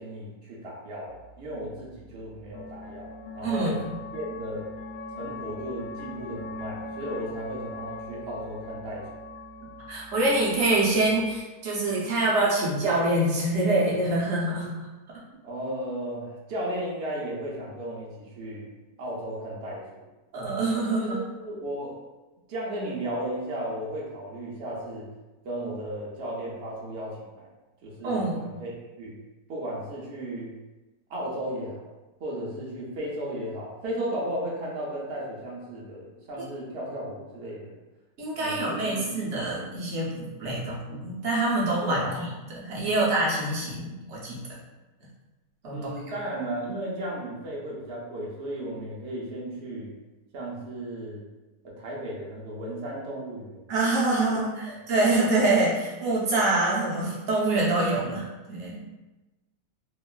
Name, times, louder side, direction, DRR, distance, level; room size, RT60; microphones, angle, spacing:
voice 1, 0.0-3.8 4.1-4.7 5.1-9.1 15.4-18.7 19.0-19.8 21.0-22.0 22.5-25.1 25.4-27.5 27.8-29.1 29.5-30.5 31.1-31.8 32.2-37.7 38.4-39.1 41.8-42.1 45.7-49.9 50.3-51.2 51.6-53.7 54.3-54.4 55.0-55.2 58.0-58.2, right 1 dB, 85° right, -5 dB, 0.5 m, -35 dB
sound 1, 1.1-11.4, left 2 dB, 85° left, 1.2 m, -41 dB
voice 2, 9.9-14.7 20.3-21.2 28.0-28.5 36.4-36.5 38.2-44.4 45.6-46.1 53.7-58.8, right 2 dB, 55° right, -5 dB, 0.8 m, -25 dB
2.9 x 2.4 x 2.3 m, 1.1 s
omnidirectional pair, 1.8 m